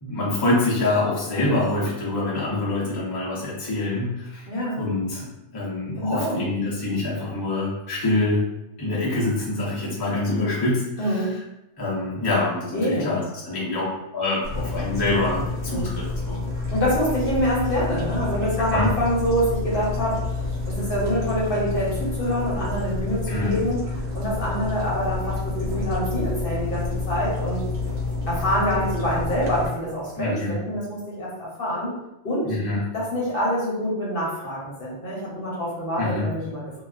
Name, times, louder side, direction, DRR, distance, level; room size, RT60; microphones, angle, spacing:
voice 1, 0.0-4.5 4.7-5.3 5.5-8.5 8.8-11.3 11.8-13.9 14.1-16.4 18.7-18.9 23.3-23.6 30.1-30.6 32.4-32.9 36.0-36.3, left 2 dB, 35° left, -7 dB, 0.4 m, -25 dB
voice 2, 4.5-4.8 6.0-6.4 11.0-11.3 12.7-13.1 15.7-15.9 16.7-23.8 24.1-27.6 28.3-31.9 32.2-32.5 32.9-36.8, equal, 50° left, -6 dB, 0.9 m, -26 dB
sound 1, 14.4-29.7, left 3 dB, 65° right, 0.8 m, -29 dB
2.3 x 2.3 x 2.3 m, 0.92 s
omnidirectional pair, 1.3 m